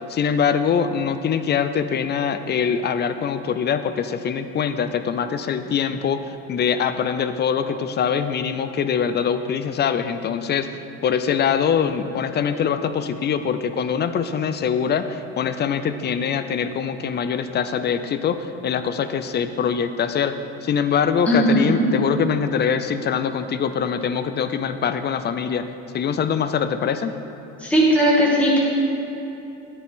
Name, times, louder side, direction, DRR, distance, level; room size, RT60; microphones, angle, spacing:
voice 1, 0.1-6.2 6.5-20.3 20.6-25.6 25.9-27.1, left 7 dB, 30° left, 10 dB, 0.5 m, -23 dB
voice 2, 21.3-21.9 27.6-28.6, right 1 dB, 5° left, -7 dB, 2.2 m, -18 dB
10.0 x 7.7 x 3.6 m, 3.0 s
supercardioid pair, 95°, 32 cm